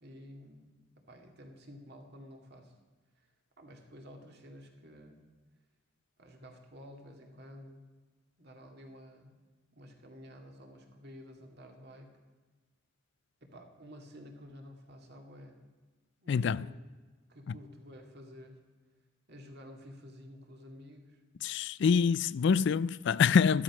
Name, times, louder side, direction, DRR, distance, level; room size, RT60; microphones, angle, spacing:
voice 1, 0.0-0.7 1.1-2.7 3.2-3.3 3.6-5.2 6.2-7.8 8.4-9.3 9.7-12.1 13.4-15.6 16.2-16.8 17.3-18.6 19.3-21.2, equal, 50° right, 2.2 m, -51 dB
voice 2, 16.3-16.6 21.4-23.6, left 6 dB, 55° left, 0.3 m, -26 dB
13.5 x 12.0 x 6.0 m
head